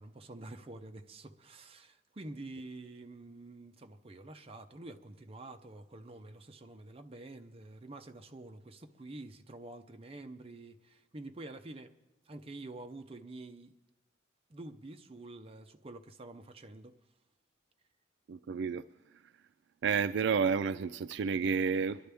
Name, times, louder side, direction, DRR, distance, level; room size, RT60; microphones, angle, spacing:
voice 1, 0.0-11.9 12.3-13.7 14.5-17.0, right 2 dB, 30° right, 0.6 m, -48 dB
voice 2, 18.3-18.8 19.8-22.1, right 6 dB, 65° right, 0.3 m, -30 dB
24.0 x 11.0 x 3.4 m
head